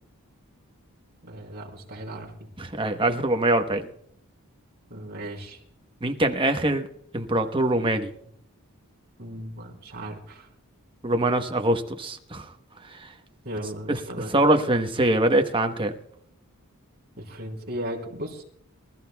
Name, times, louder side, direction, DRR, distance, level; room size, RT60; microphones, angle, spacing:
voice 1, 1.2-2.4 3.8-3.9 4.9-5.6 9.2-10.5 13.4-14.3 17.2-18.4, right 1 dB, 45° right, -1 dB, 3.7 m, -36 dB
voice 2, 2.6-3.8 6.0-6.9 7.1-8.1 11.0-12.5 12.9-13.1 13.9-14.0 14.3-15.9, right 1 dB, 25° right, 5 dB, 1.0 m, -23 dB
25.0 x 14.0 x 2.3 m, 0.70 s
head